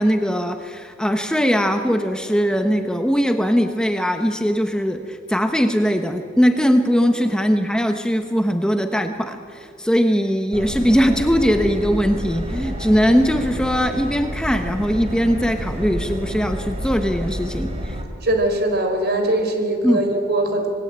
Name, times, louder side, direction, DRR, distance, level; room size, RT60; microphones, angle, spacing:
voice 1, 0.0-18.0 19.8-20.0, equal, 5° left, 6 dB, 1.1 m, -20 dB
Subway metro underground, 10.5-18.0, equal, 30° right, 3.3 m, -29 dB
voice 2, 18.2-20.7, right 1 dB, 55° right, 5 dB, 4.5 m, -21 dB
27.0 x 20.0 x 8.9 m, 2.5 s
head